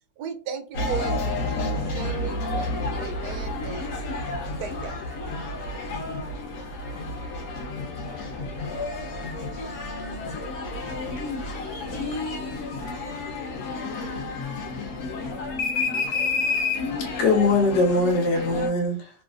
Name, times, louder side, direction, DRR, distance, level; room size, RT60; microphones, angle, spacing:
voice 1, 0.2-4.2 4.6-5.0, right 7 dB, 70° right, 1.1 m, -37 dB
sound 1, 0.7-18.7, left 3 dB, 65° left, 1.1 m, -30 dB
voice 2, 7.3-9.7 10.7-11.5 11.8-12.4, equal, 25° left, 1.4 m, -48 dB
voice 3, 17.0-19.1, left 2 dB, 85° left, 1.4 m, -22 dB
3.1 x 2.4 x 2.4 m
omnidirectional pair, 1.9 m